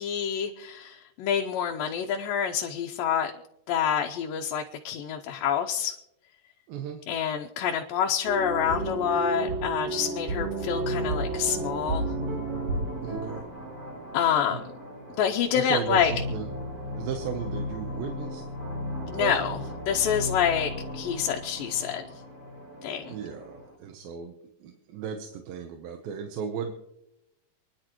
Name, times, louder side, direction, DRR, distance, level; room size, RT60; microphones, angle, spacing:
voice 1, 0.0-3.3 3.7-5.9 7.1-12.1 14.1-14.6 15.2-16.1 19.1-19.6 19.9-22.1 22.8-23.2, left 8 dB, 80° left, 2 dB, 2.4 m, -27 dB
voice 2, 6.7-7.0 13.0-13.4 14.5-14.6 15.5-16.5 16.9-18.4 19.2-19.6 23.1-24.4 24.6-26.7, right 7 dB, 85° right, 5 dB, 2.8 m, -35 dB
sound 1, 8.2-13.4, right 3 dB, 65° right, 3.7 m, -31 dB
sound 2, 10.4-23.8, left 1 dB, 30° right, 2.5 m, -37 dB
27.5 x 10.5 x 3.0 m, 0.83 s
omnidirectional pair, 4.0 m